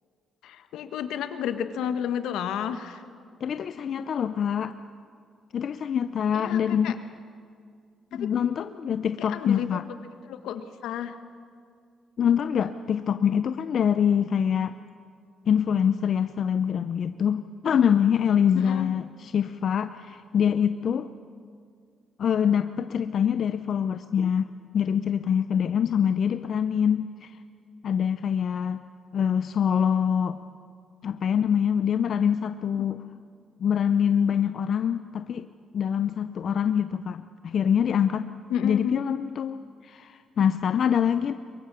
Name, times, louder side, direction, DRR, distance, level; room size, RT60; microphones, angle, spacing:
voice 1, 0.4-3.0 6.3-7.0 9.2-9.8 10.3-11.2 18.5-18.9 32.8-32.9 38.5-39.0, left 9 dB, 85° left, 10 dB, 1.3 m, -31 dB
voice 2, 3.4-4.7 5.5-7.0 8.1-9.8 12.2-14.7 15.5-21.1 22.2-27.4 27.8-28.8 29.1-30.4 31.0-33.0 33.6-35.5 35.7-38.3 38.6-41.3, left 8 dB, 60° left, 11 dB, 0.6 m, -25 dB
23.0 x 22.5 x 6.9 m, 2.1 s
cardioid pair, 90°, 0 cm